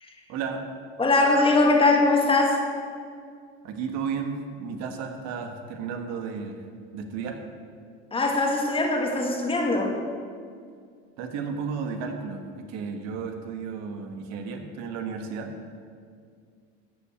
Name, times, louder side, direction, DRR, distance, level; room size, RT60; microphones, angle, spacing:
voice 1, 0.3-0.6 3.6-6.6 6.9-7.4 11.2-15.5, right 5 dB, 60° right, 5 dB, 1.5 m, -33 dB
voice 2, 1.0-2.6 8.1-9.9, left 2 dB, 20° left, 2 dB, 1.8 m, -21 dB
13.5 x 5.7 x 8.4 m, 2.1 s
supercardioid pair, 125°, 30 cm